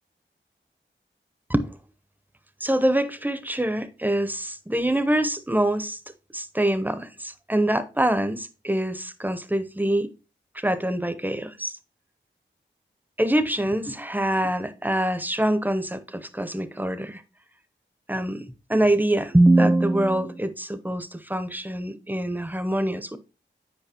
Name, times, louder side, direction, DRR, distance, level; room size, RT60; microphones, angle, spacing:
voice 1, 2.6-6.0 6.3-10.1 10.5-11.8 13.2-17.2 18.1-18.4 18.7-23.2, right 1 dB, 10° right, 0.7 m, -24 dB
9.2 x 4.8 x 2.8 m
wide cardioid pair, 45°, 20 cm